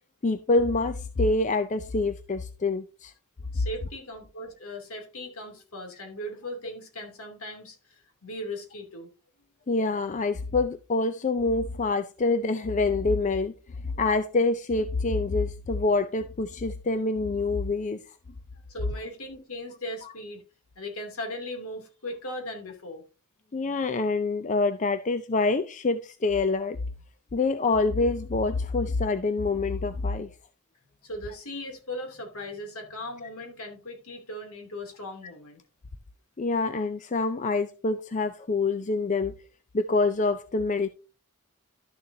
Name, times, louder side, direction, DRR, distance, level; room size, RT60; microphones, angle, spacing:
voice 1, 0.2-3.1 9.7-13.5 14.0-18.0 23.5-26.8 27.3-30.3 36.4-39.3 39.7-40.9, left 3 dB, 35° left, 0.5 m, -26 dB
voice 2, 3.5-9.1 18.7-20.4 20.8-23.0 31.0-35.6, left 1 dB, 70° left, 2.7 m, -38 dB
12.0 x 6.8 x 2.7 m
head